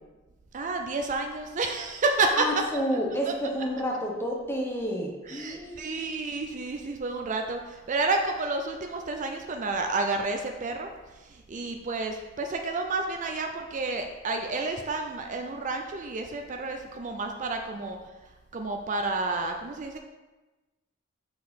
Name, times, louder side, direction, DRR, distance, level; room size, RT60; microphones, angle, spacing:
voice 1, 0.5-2.4 2.9-3.0 3.3-3.4 5.3-10.9 11.3-18.0 18.5-20.0, right 3 dB, 40° right, 4 dB, 0.4 m, -30 dB
voice 2, 2.3-6.0, equal, 10° left, 0 dB, 0.9 m, -30 dB
6.0 x 4.8 x 4.1 m, 1.2 s
head